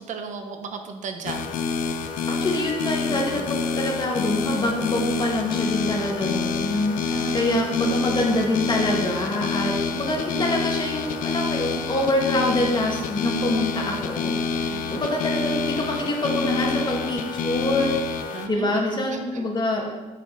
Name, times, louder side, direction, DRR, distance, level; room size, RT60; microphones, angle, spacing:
voice 1, 0.1-1.5 3.1-3.4 7.0-7.9 9.6-10.2 14.7-15.0 18.3-18.8 19.1-19.4, right 5 dB, 70° right, 6 dB, 1.0 m, -36 dB
sound 1, 1.3-18.5, left 5 dB, 90° left, 0.6 m, -27 dB
voice 2, 2.3-14.4 14.9-17.9 18.5-19.8, left 1 dB, 35° left, 0 dB, 2.0 m, -25 dB
9.1 x 6.6 x 4.1 m, 1.2 s
cardioid pair, 85°, 13 cm